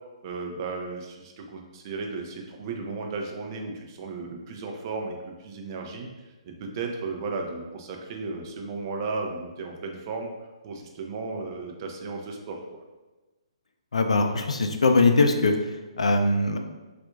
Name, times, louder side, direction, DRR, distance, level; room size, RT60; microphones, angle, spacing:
voice 1, 0.2-6.1 6.4-10.3 10.6-12.6, right 3 dB, 40° right, 2 dB, 0.5 m, -34 dB
voice 2, 13.9-15.5 16.0-16.6, left 3 dB, 80° left, 5 dB, 0.4 m, -21 dB
4.2 x 2.4 x 2.3 m, 1.2 s
hypercardioid pair, 135°, 3 cm